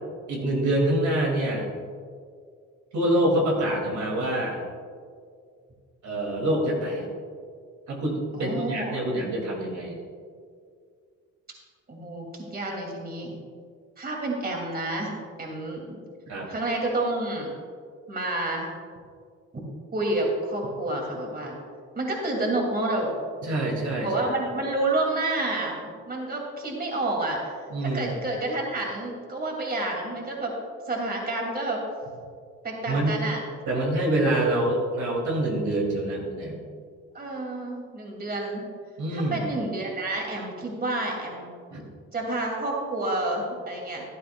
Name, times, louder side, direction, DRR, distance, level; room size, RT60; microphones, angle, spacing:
voice 1, 0.3-1.7 2.9-4.6 6.0-7.1 7.9-10.0 16.3-16.5 23.4-24.1 27.7-28.1 32.9-33.2 33.7-36.6 39.0-39.5 41.7-41.8, right 1 dB, 70° right, -1 dB, 2.4 m, -26 dB
voice 2, 8.3-8.9 11.9-13.4 14.0-16.0 16.5-17.5 18.1-18.7 19.9-21.6 21.9-23.1 24.0-27.4 27.8-30.5 30.9-31.8 32.6-33.4 37.1-38.7 39.1-41.5 42.1-44.0, right 2 dB, 30° right, 0 dB, 2.4 m, -29 dB
14.5 x 11.0 x 2.3 m, 2.1 s
cardioid pair, 90°, 30 cm